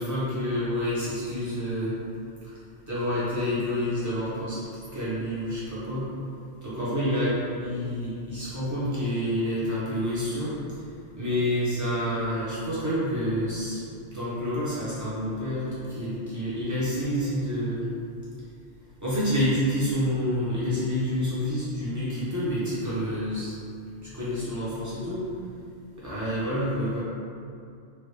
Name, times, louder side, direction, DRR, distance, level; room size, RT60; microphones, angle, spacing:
voice 1, 0.0-2.0 2.9-4.6 4.9-6.1 6.6-10.5 11.1-13.8 14.1-17.9 19.0-23.5 24.0-25.2 26.0-27.0, equal, 15° right, -11 dB, 0.9 m, -28 dB
3.0 x 2.5 x 3.3 m, 2.5 s
omnidirectional pair, 1.2 m